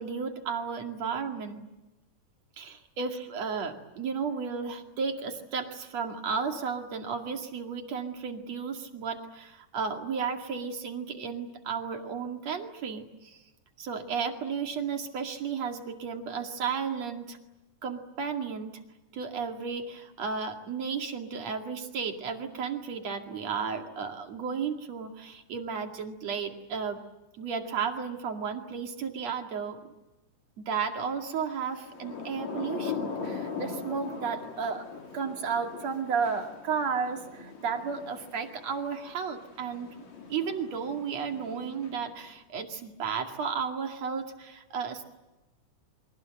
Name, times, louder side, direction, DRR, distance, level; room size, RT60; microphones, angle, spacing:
voice 1, 0.0-1.7 2.6-13.4 13.8-17.4 17.8-18.7 19.1-27.0 27.4-29.9 30.7-34.8 35.1-39.9 40.3-45.1, right 6 dB, 55° right, 4 dB, 3.3 m, -33 dB
Thunder / Rain, 31.7-42.3, left 5 dB, 60° left, 4.9 m, -40 dB
29.5 x 24.0 x 7.8 m, 1.0 s
omnidirectional pair, 3.6 m